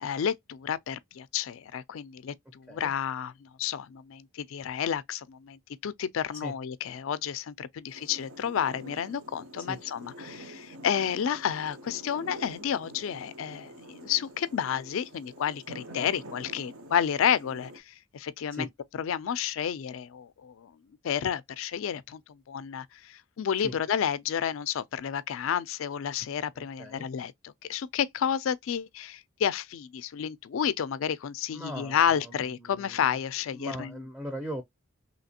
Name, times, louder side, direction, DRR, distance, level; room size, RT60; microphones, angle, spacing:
voice 1, 0.0-18.7 19.0-20.7 21.0-33.9, left 8 dB, 70° left, 0.3 m, -31 dB
sound 1, 7.9-17.8, right 1 dB, 80° right, 0.8 m, -47 dB
voice 2, 26.6-27.1 31.5-33.2 33.5-34.6, equal, 5° right, 0.4 m, -39 dB
3.2 x 2.8 x 2.7 m
head